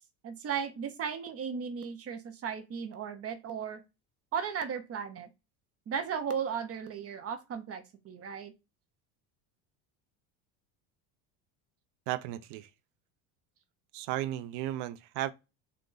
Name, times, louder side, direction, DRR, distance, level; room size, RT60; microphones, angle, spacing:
voice 1, 0.2-3.8 4.3-5.3 5.9-8.5, right 7 dB, 35° right, 0.7 m, -36 dB
voice 2, 12.1-12.7 13.9-15.3, right 14 dB, 70° right, 0.6 m, -34 dB
3.9 x 2.2 x 3.8 m
supercardioid pair, 120°, 41 cm